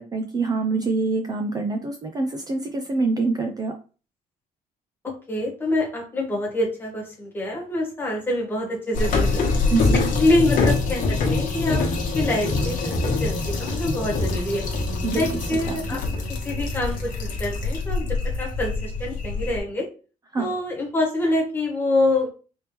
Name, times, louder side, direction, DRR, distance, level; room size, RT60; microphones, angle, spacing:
voice 1, 0.0-3.7 9.7-10.0 15.0-15.2 15.7-16.0 20.3-20.5, right 3 dB, 25° right, 4 dB, 0.4 m, -25 dB
voice 2, 5.0-9.5 9.9-11.9 12.1-14.6 15.1-16.0 16.4-19.9 20.4-22.3, left 1 dB, 15° left, -2 dB, 1.4 m, -26 dB
sound 1, 8.9-19.6, left 3 dB, 65° left, 1.2 m, -24 dB
4.4 x 3.4 x 3.0 m, 0.36 s
cardioid pair, 165°, 15 cm